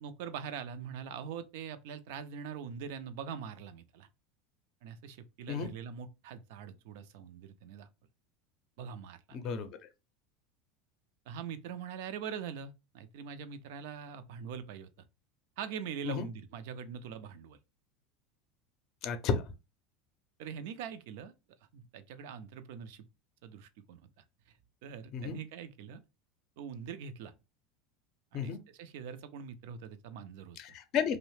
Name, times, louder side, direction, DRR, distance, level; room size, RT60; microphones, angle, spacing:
voice 1, 0.0-4.1 4.8-7.9 8.8-9.4 11.3-14.9 15.6-17.6 20.4-21.3 21.7-23.1 23.4-24.1 24.8-26.0 26.6-27.3 28.3-30.6, right 7 dB, 70° right, 0.4 m, -43 dB
voice 2, 9.3-9.7 16.0-16.3 19.0-19.4 25.1-25.4 28.3-28.6 30.6-31.2, left 6 dB, 50° left, 0.5 m, -32 dB
2.7 x 2.0 x 3.0 m
supercardioid pair, 105°, 0 cm